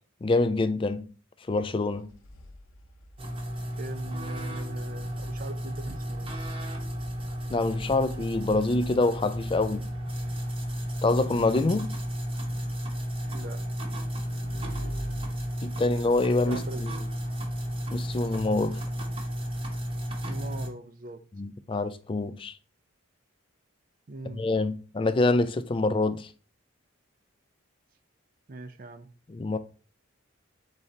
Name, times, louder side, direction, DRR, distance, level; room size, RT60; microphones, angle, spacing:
voice 1, 0.2-1.1 1.5-2.1 7.5-9.9 11.0-11.9 15.6-16.9 17.9-18.8 21.4-22.5 24.3-26.3 29.3-29.6, left 2 dB, 25° left, 0.3 m, -26 dB
sound 1, 1.7-12.5, equal, 70° left, 0.6 m, -49 dB
sound 2, 3.2-20.7, equal, 25° right, 0.9 m, -33 dB
voice 2, 3.8-6.3 13.2-13.6 16.5-17.0 20.2-21.2 24.1-24.4 28.5-29.1, right 2 dB, 40° right, 0.5 m, -40 dB
Motorcycle / Engine, 13.4-16.9, right 1 dB, 80° right, 1.1 m, -45 dB
4.1 x 3.8 x 3.2 m
head